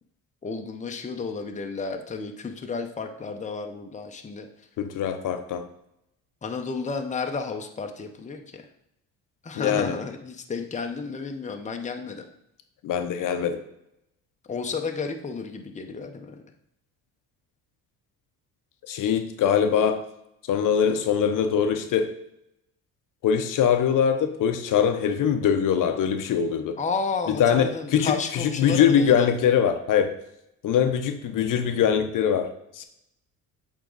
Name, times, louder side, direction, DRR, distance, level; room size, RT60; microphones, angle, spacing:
voice 1, 0.4-4.5 6.4-8.6 9.4-12.3 14.5-16.4 26.8-29.3, left 4 dB, 20° left, 4 dB, 0.8 m, -32 dB
voice 2, 4.8-5.7 9.6-9.9 12.8-13.6 18.9-20.1 20.5-22.1 23.2-26.8 27.3-30.1 30.6-32.5 32.7-32.8, left 8 dB, 65° left, 8 dB, 0.7 m, -22 dB
8.1 x 3.7 x 3.9 m, 0.81 s
cardioid pair, 95°, 35 cm